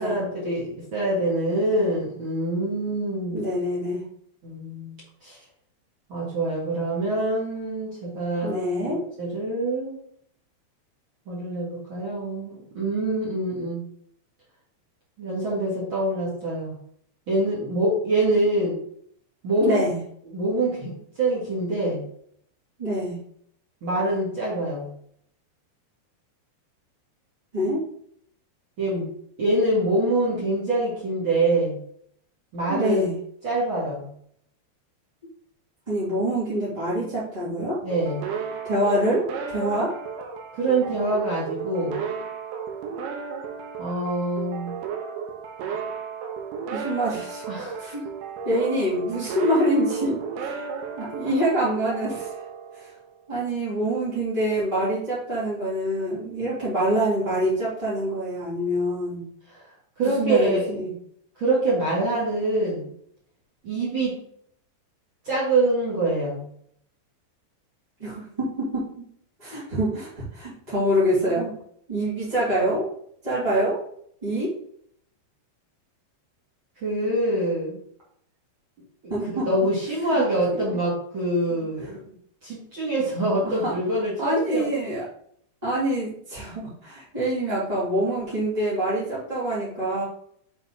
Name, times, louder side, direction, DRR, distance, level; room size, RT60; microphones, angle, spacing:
voice 1, 0.0-3.5 4.4-4.9 5.2-5.4 6.1-8.8 9.2-10.0 11.2-13.8 15.2-16.8 17.3-18.8 19.4-19.8 20.3-22.0 23.8-24.9 28.8-29.1 29.4-31.8 32.5-33.1 33.4-34.1 37.8-38.3 40.5-42.0 43.8-44.8 47.5-47.9 59.5-59.7 60.0-60.7 61.4-62.9 63.6-64.2 65.2-66.4 76.8-77.8 79.5-82.0 82.4-84.7, right 1 dB, 65° right, -6 dB, 1.2 m, -25 dB
voice 2, 3.3-4.0 8.4-9.0 19.6-20.0 22.8-23.2 27.5-27.8 30.3-30.4 32.7-33.1 35.9-37.8 38.6-39.9 46.7-47.4 47.8-48.1 48.4-50.6 50.9-52.3 52.7-52.9 53.3-59.2 60.2-60.9 68.0-69.0 69.4-71.5 71.9-72.9 73.2-73.8 74.2-74.5 79.1-79.5 80.1-80.2 80.7-80.8 83.4-83.7 84.2-85.0 85.6-90.0, right 1 dB, 15° right, -10 dB, 1.8 m, -25 dB
sound 1, 37.9-53.3, right 6 dB, 85° right, 3.2 m, -34 dB
7.2 x 4.3 x 4.1 m, 0.66 s
omnidirectional pair, 5.4 m